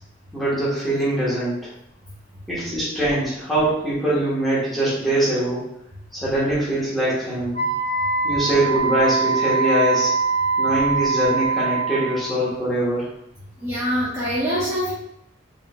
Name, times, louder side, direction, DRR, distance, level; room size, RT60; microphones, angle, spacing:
voice 1, 0.3-1.6 2.5-5.6 6.1-7.6 8.2-10.1 10.6-13.1, right 1 dB, ahead, -10 dB, 1.7 m, -22 dB
Wind instrument woodwind instrument, 7.5-12.3, right 4 dB, 70° right, 1.6 m, -23 dB
voice 2, 13.6-14.9, equal, 15° right, -11 dB, 1.0 m, -24 dB
4.9 x 3.7 x 2.5 m, 0.81 s
head